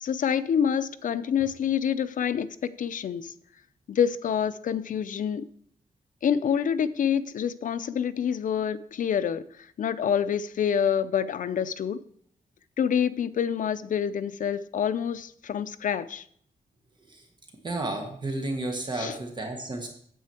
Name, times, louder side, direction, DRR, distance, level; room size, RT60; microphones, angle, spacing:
voice 1, 0.0-3.3 3.9-5.4 6.2-12.0 12.8-16.2 18.9-19.1, left 8 dB, 65° left, 0.5 m, -27 dB
voice 2, 17.6-19.9, right 2 dB, 30° right, 1.3 m, -32 dB
9.3 x 7.7 x 4.3 m
wide cardioid pair, 125°, 15 cm